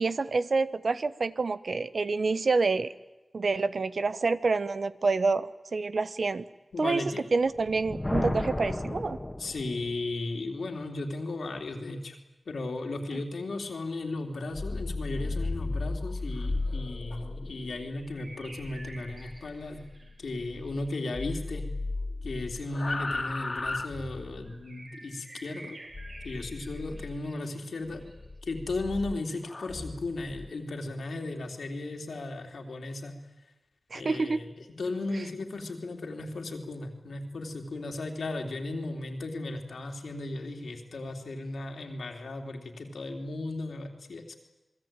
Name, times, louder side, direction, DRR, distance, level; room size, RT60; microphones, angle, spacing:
voice 1, 0.0-2.9 3.3-6.4 6.8-7.0 7.3-9.2 33.9-34.4, right 4 dB, 70° right, 14 dB, 1.1 m, -27 dB
voice 2, 6.7-7.2 9.4-12.2 12.4-19.8 20.2-21.7 22.2-25.8 26.2-28.0 28.4-33.2 33.9-44.4, left 2 dB, 85° left, 4 dB, 3.4 m, -35 dB
Thunder, 7.4-10.1, left 1 dB, 25° left, 2.2 m, -33 dB
sound 1, 14.4-20.9 21.1-24.5 25.9-27.2 27.8-30.5, left 2 dB, 45° left, 2.6 m, -36 dB
sound 2, 16.2-16.3 18.0-21.3 24.4-28.2, right 2 dB, 55° right, 5.6 m, -50 dB
28.0 x 21.0 x 9.1 m, 1.0 s
cardioid pair, 55°, 0 cm